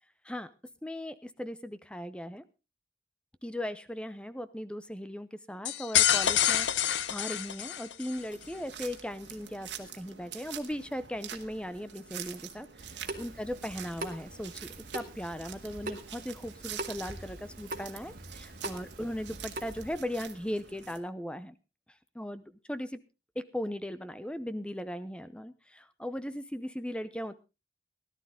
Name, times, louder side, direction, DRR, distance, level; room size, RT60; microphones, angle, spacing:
voice 1, 0.8-2.4 3.4-6.7 7.1-14.7 14.9-21.5 22.1-23.0 23.4-27.3, equal, 5° left, 14 dB, 0.7 m, -38 dB
sound 1, 5.7-8.2, left 11 dB, 85° left, 0.8 m, -27 dB
sound 2, 8.1-21.0, right 9 dB, 85° right, 1.6 m, -46 dB
Water tap faucet / Sink (filling or washing) / Drip, 12.8-19.9, right 2 dB, 50° right, 2.0 m, -43 dB
17.0 x 12.0 x 3.7 m, 0.28 s
head